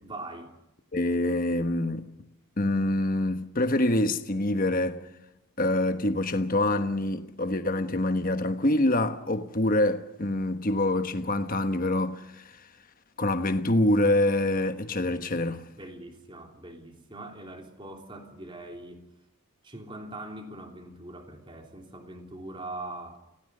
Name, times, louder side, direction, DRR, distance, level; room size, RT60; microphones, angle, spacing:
voice 1, 0.0-0.5 15.8-19.0 19.6-23.2, right 2 dB, 20° right, 3.1 m, -42 dB
voice 2, 0.9-2.1 2.6-5.1 5.6-12.5 13.2-15.6, left 1 dB, 40° left, 1.3 m, -26 dB
28.0 x 16.5 x 6.7 m
head